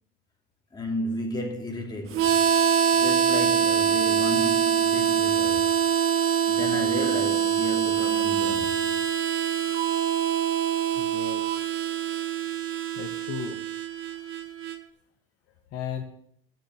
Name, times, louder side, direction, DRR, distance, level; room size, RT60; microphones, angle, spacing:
voice 1, 0.7-2.5 2.9-5.8 6.5-9.0, left 1 dB, 15° left, 3.0 m, -33 dB
Harmonica, 2.1-14.8, right 8 dB, 45° right, 1.2 m, -24 dB
voice 2, 11.0-11.5 13.0-13.6 14.0-14.2 15.7-16.0, left 8 dB, 55° left, 1.4 m, -35 dB
10.0 x 6.7 x 8.1 m
hypercardioid pair, 75°, 29 cm